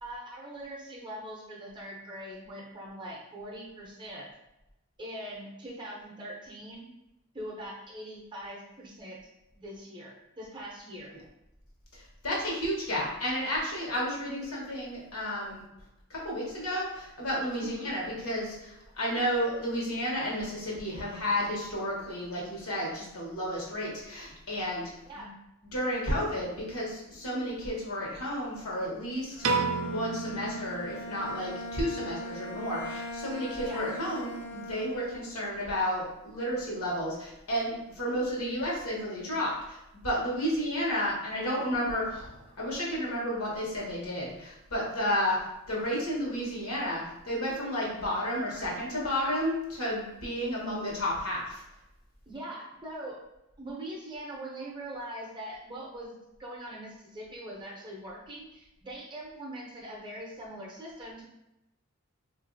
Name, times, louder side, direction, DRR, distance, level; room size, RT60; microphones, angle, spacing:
voice 1, 0.0-4.3 5.0-6.9 7.3-9.2 9.5-11.1 17.6-17.9 25.0-25.3 33.6-33.9 52.3-53.2 53.6-61.3, right 1 dB, 20° right, -3 dB, 0.6 m, -42 dB
voice 2, 11.9-15.6 16.1-24.9 25.2-25.3 25.7-29.5 29.8-39.8 40.0-45.4 45.7-51.6, equal, 75° left, -4 dB, 1.1 m, -32 dB
Bowed string instrument, 29.3-35.4, left 1 dB, 50° left, 0.6 m, -40 dB
Piano, 29.4-31.7, right 4 dB, 70° right, 0.4 m, -32 dB
3.9 x 2.5 x 2.6 m, 0.91 s
head